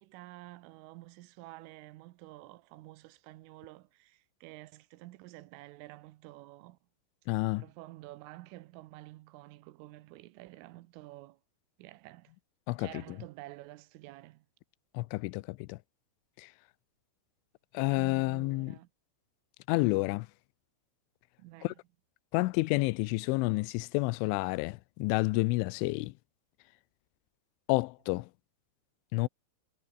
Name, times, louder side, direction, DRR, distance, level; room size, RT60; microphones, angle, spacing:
voice 1, 0.0-6.8 7.6-11.4 11.8-12.3 12.8-14.5 17.9-18.9 21.4-21.8, right 18 dB, 80° right, 3.4 m, -50 dB
voice 2, 7.3-7.6 12.7-13.0 14.9-15.8 16.4-16.5 17.7-18.8 19.7-20.3 21.6-21.7 22.3-26.1 27.7-28.3 29.1-29.3, left 23 dB, 80° left, 2.9 m, -29 dB
omnidirectional pair, 6.0 m